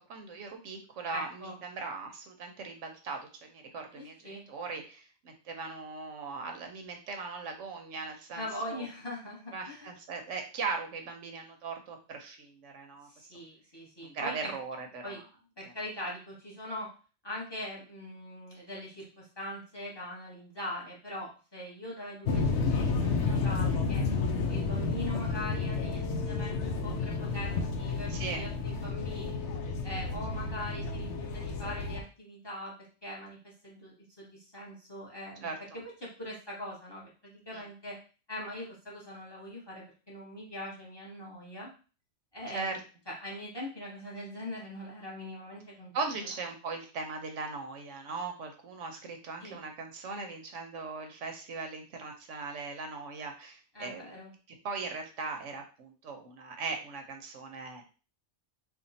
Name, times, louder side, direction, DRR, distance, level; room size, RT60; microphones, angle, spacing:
voice 1, 0.0-8.4 8.7-8.9 9.5-13.1 14.0-15.2 15.6-15.7 28.1-28.4 35.4-35.5 37.5-37.6 42.5-42.8 45.9-54.0 54.6-57.8, right 4 dB, 85° right, 4 dB, 1.1 m, -39 dB
voice 2, 1.1-1.6 3.9-4.4 8.4-9.9 13.1-14.5 15.0-15.2 15.6-16.9 17.2-22.7 23.0-24.1 24.5-29.4 29.8-32.7 33.0-38.0 38.3-41.7 42.3-42.8 43.1-45.9 49.4-49.6 53.7-54.3, left 1 dB, 20° left, -3 dB, 1.2 m, -42 dB
sound 1, 22.3-32.0, left 4 dB, 75° left, 0.9 m, -31 dB
3.5 x 2.3 x 4.0 m, 0.35 s
omnidirectional pair, 1.2 m